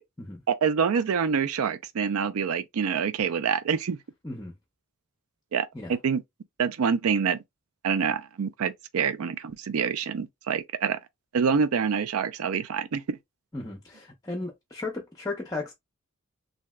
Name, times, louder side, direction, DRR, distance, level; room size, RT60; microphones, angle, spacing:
voice 1, 0.5-4.0 5.5-6.2 6.6-7.4 7.8-11.0 11.3-13.2, right 6 dB, 80° right, 0.4 m, -26 dB
voice 2, 13.5-15.7, left 2 dB, 15° left, 0.5 m, -35 dB
3.2 x 2.7 x 2.3 m
head